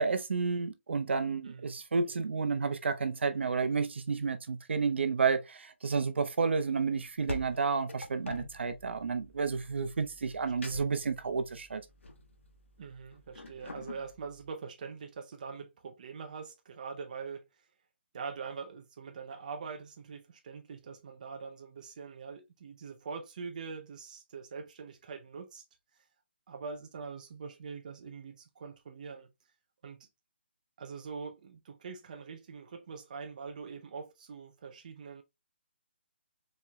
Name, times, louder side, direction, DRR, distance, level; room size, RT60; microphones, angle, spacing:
voice 1, 0.0-11.8, right 5 dB, 65° right, 0.8 m, -31 dB
sound 1, 6.8-14.5, left 1 dB, 90° left, 1.1 m, -46 dB
voice 2, 12.8-17.7 18.1-25.6 26.5-29.3 29.8-30.1 30.8-35.2, right 5 dB, 40° right, 0.6 m, -43 dB
4.4 x 4.3 x 2.2 m
hypercardioid pair, 165°, 6 cm